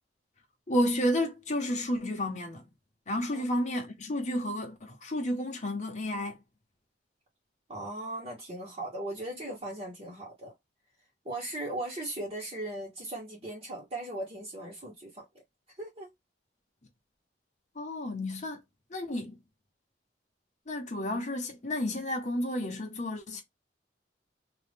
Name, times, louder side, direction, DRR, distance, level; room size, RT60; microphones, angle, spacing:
voice 1, 0.7-2.6 3.1-6.4 17.7-18.6 18.9-19.4 20.7-23.4, left 1 dB, 40° left, 1.1 m, -31 dB
voice 2, 7.7-10.5 11.2-15.2 15.8-16.1, right 1 dB, 35° right, 1.4 m, -38 dB
2.9 x 2.6 x 3.4 m
head